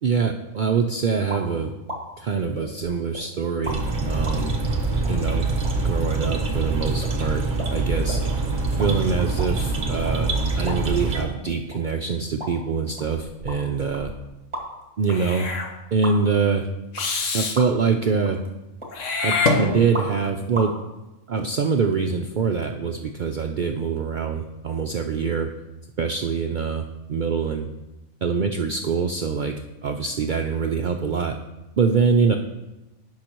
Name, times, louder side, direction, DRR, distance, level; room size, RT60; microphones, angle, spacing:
voice 1, 0.0-1.7 2.2-4.5 5.1-5.5 5.8-7.4 7.7-8.2 8.8-14.1 15.0-15.5 15.9-16.7 17.3-18.4 19.2-20.7 21.3-25.5 26.0-27.7 28.2-29.5 29.8-31.3 31.8-32.4, right 5 dB, 65° right, 4 dB, 0.4 m, -24 dB
sound 1, 1.3-1.5 1.9-2.0 2.5-3.2 3.7-3.8 4.3-4.4 5.0-5.1 5.6-5.7 6.2-6.4 6.6-6.7 7.0-7.1 7.6-7.7 8.1-8.2 8.6-8.9 9.2-10.1 10.7-11.3 11.7-11.8 12.4-12.5 13.0-14.8 15.1-15.2 16.0-16.1 17.0-17.3 17.6-17.9 18.2-18.5 18.8-19.4 19.9-20.3 20.5-20.7, right 1 dB, 20° right, 1.7 m, -34 dB
sound 2, 3.6-11.2, right 3 dB, 40° right, 1.2 m, -25 dB
Meow / Hiss, 15.1-15.7 16.9-17.6 18.9-20.1, left 3 dB, 70° left, 1.3 m, -25 dB
16.5 x 5.7 x 3.0 m, 1.0 s
omnidirectional pair, 1.3 m